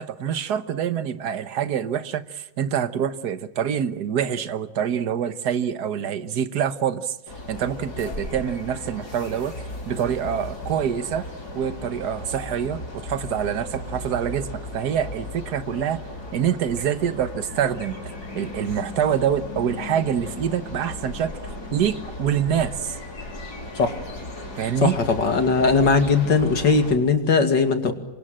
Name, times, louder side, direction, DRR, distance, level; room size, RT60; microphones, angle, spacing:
voice 1, 0.0-7.2 7.5-9.5 9.9-11.3 11.5-16.0 16.3-18.0 18.3-21.3 21.7-23.0 24.6-24.9, right 8 dB, 65° right, 12 dB, 1.7 m, -26 dB
sound 1, 7.3-27.0, left 2 dB, 60° left, 5.8 m, -36 dB
voice 2, 24.8-27.9, left 4 dB, 75° left, 7 dB, 3.1 m, -19 dB
28.0 x 24.0 x 7.6 m, 1.0 s
omnidirectional pair, 1.9 m